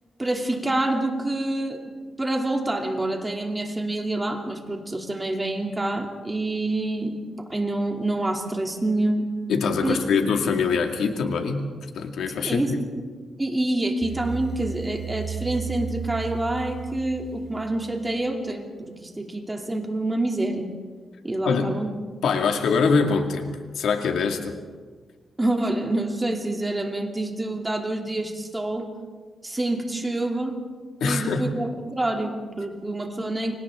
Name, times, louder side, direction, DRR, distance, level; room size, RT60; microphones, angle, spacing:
voice 1, 0.2-1.9 2.2-7.2 7.5-9.3 9.8-10.0 12.4-12.7 13.4-18.7 19.0-20.7 21.2-21.9 25.4-28.9 29.4-30.6 31.0-33.5, right 2 dB, 15° right, 1 dB, 2.7 m, -27 dB
voice 2, 9.5-11.6 11.9-12.8 21.4-21.7 22.2-24.6 31.0-31.4, left 5 dB, 90° left, 4 dB, 2.1 m, -23 dB
sound 1, 14.0-18.1, right 6 dB, 50° right, 2.4 m, -34 dB
29.0 x 25.0 x 3.7 m, 1.5 s
wide cardioid pair, 125°, 0 cm